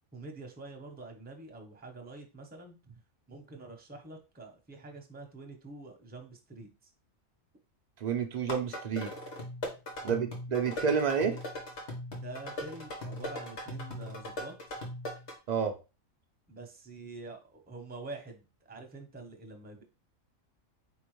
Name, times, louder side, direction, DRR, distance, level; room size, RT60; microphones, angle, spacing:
voice 1, 0.1-2.8 3.3-6.7 10.0-10.2 12.1-14.5 16.5-19.8, right 3 dB, 10° right, 0.6 m, -46 dB
voice 2, 8.0-9.1 10.0-11.4 15.5-15.8, right 6 dB, 65° right, 0.4 m, -29 dB
sound 1, 8.4-15.4, left 1 dB, 60° left, 1.4 m, -39 dB
4.2 x 3.7 x 3.1 m
omnidirectional pair, 1.4 m